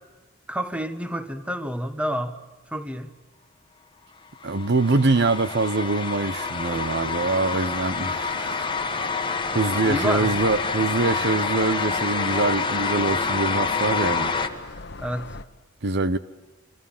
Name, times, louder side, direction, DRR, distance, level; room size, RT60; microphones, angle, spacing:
voice 1, 0.5-2.3 2.7-3.1 9.8-10.3 15.0-15.3, equal, 5° right, 1.5 m, -29 dB
sound 1, 4.4-14.5, left 4 dB, 25° left, 1.6 m, -27 dB
voice 2, 4.4-8.7 9.2-9.3 9.5-14.3 15.8-16.2, right 3 dB, 60° right, 0.9 m, -24 dB
sound 2, 6.6-15.4, left 3 dB, 60° left, 1.2 m, -42 dB
26.5 x 25.5 x 7.3 m
head